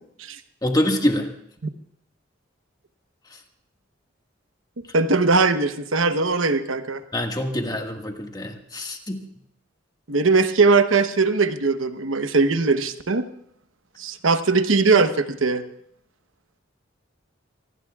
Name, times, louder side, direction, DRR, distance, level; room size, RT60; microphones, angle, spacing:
voice 1, 0.6-1.3 7.1-9.2, left 1 dB, 20° left, 3 dB, 1.7 m, -25 dB
voice 2, 4.8-7.0 10.1-13.2 14.0-15.6, right 4 dB, 90° right, 9 dB, 1.0 m, -20 dB
25.0 x 18.5 x 2.4 m, 0.70 s
head